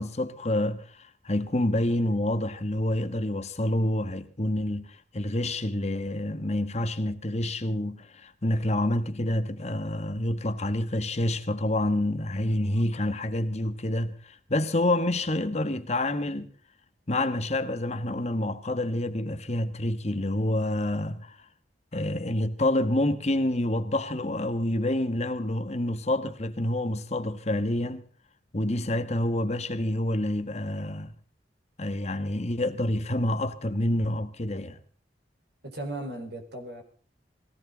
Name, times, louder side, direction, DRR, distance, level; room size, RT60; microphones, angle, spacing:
voice 1, 0.0-16.5 17.1-21.4 21.9-28.0 28.5-31.1 31.8-34.8, left 1 dB, 40° left, 1.4 m, -28 dB
voice 2, 35.6-36.8, right 1 dB, 65° right, 4.6 m, -36 dB
21.0 x 16.5 x 4.0 m
head